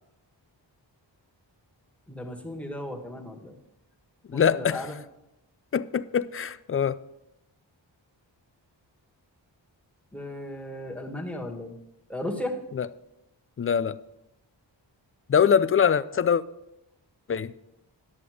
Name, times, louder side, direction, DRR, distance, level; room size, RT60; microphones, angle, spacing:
voice 1, 2.1-3.6 4.3-5.0 10.1-11.8 12.1-12.6, left 1 dB, 5° left, 1.7 m, -35 dB
voice 2, 4.3-4.9 5.7-7.0 12.8-12.9 13.6-14.0 15.3-16.4 17.3-17.5, left 7 dB, 30° left, 0.4 m, -23 dB
11.0 x 6.8 x 5.0 m
cardioid pair, 60°, 45 cm